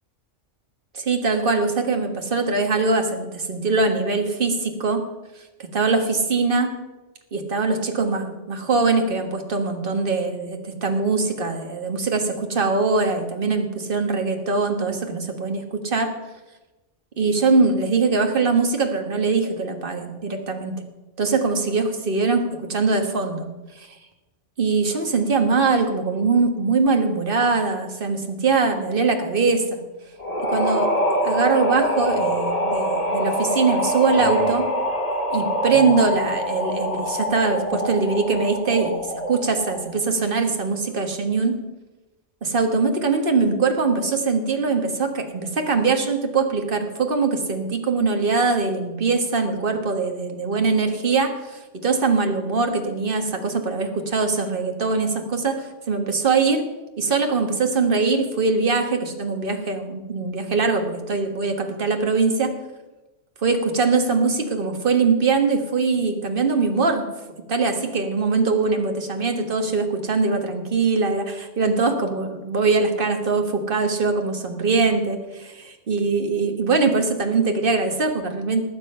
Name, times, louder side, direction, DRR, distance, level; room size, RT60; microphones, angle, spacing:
voice 1, 0.9-5.0 5.6-6.7 7.3-16.1 17.2-20.7 21.2-23.5 23.8-23.9 24.6-29.8 30.4-30.9 31.2-34.7 35.3-41.6 42.4-56.6 57.0-62.5 63.4-67.0 67.5-78.6, right 4 dB, 45° right, 5 dB, 1.7 m, -22 dB
sound 1, 30.2-39.9, equal, 30° left, 1.8 m, -24 dB
19.0 x 7.8 x 5.5 m, 1.1 s
omnidirectional pair, 1.3 m